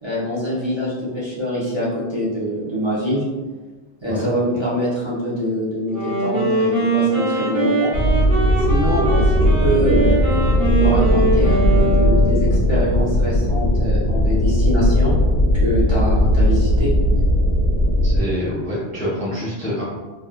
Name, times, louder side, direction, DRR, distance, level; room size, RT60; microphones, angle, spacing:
voice 1, 0.0-3.2 4.0-7.9 8.6-10.2 10.8-15.1 15.5-16.9, equal, 30° right, -9 dB, 0.7 m, -24 dB
Wind instrument woodwind instrument, 5.9-12.7, right 2 dB, 80° right, 1.5 m, -22 dB
sound 1, 7.9-18.2, equal, 65° left, 1.3 m, -17 dB
voice 2, 18.0-19.8, equal, 10° left, -8 dB, 0.6 m, -26 dB
3.5 x 2.4 x 2.2 m, 1.3 s
omnidirectional pair, 1.1 m